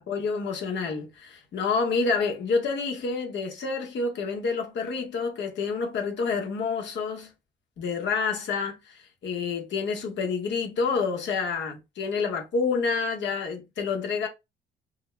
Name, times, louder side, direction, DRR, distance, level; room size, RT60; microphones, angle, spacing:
voice 1, 0.1-7.3 7.8-14.3, left 4 dB, 65° left, 0.9 m, -28 dB
2.5 x 2.0 x 3.1 m
cardioid pair, 90°, 20 cm